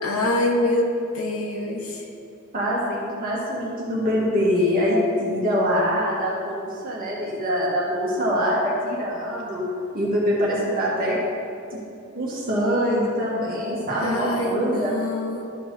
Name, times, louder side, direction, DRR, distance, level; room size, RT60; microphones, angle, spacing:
voice 1, 0.0-2.0 13.9-15.4, left 1 dB, 90° left, 0 dB, 1.3 m, -25 dB
voice 2, 2.5-9.6 9.9-11.2 11.7-11.8 12.1-15.0, equal, 45° right, -6 dB, 1.9 m, -24 dB
13.0 x 4.7 x 4.2 m, 2.7 s
head